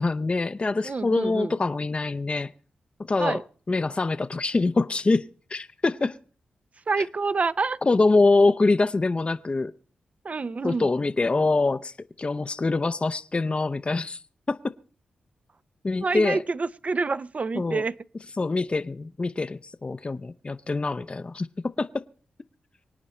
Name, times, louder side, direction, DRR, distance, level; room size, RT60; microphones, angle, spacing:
voice 1, 0.0-2.5 3.1-3.4 3.7-6.2 7.8-9.7 10.6-14.2 14.5-14.6 15.8-16.4 17.6-17.8 18.4-22.0, left 3 dB, 35° left, 0.5 m, -24 dB
voice 2, 0.8-1.5 3.2-3.4 6.9-7.8 10.2-10.9 16.0-18.0, right 4 dB, 45° right, 0.6 m, -27 dB
25.0 x 9.0 x 4.3 m
cardioid pair, 50°, 3 cm